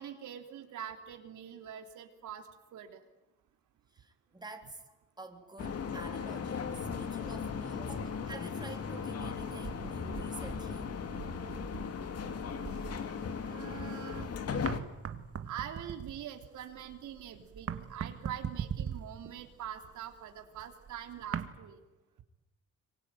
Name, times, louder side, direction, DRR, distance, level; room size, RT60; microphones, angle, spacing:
voice 1, 0.0-3.0 13.4-14.3 15.4-21.8, right 9 dB, 75° right, 4 dB, 3.4 m, -44 dB
voice 2, 3.9-8.0 8.3-11.1, right 2 dB, 15° right, 3 dB, 4.0 m, -49 dB
sound 1, 5.6-14.8, left 6 dB, 55° left, 2.4 m, -37 dB
sound 2, 9.2-14.2 14.5-21.5, right 8 dB, 50° right, 2.0 m, -42 dB
25.5 x 24.0 x 9.3 m, 1.0 s
cardioid pair, 90°, 30 cm